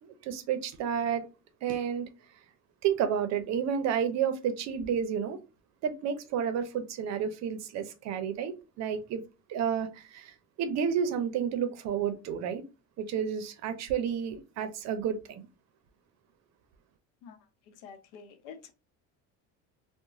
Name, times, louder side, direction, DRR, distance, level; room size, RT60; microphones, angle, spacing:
voice 1, 0.0-1.2 1.6-2.1 2.8-5.4 5.8-9.2 9.5-12.6 13.0-15.5, right 8 dB, 55° right, 0.6 m, -31 dB
voice 2, 17.7-18.7, left 6 dB, 90° left, 0.7 m, -48 dB
2.8 x 2.1 x 2.5 m
cardioid pair, 125°, 33 cm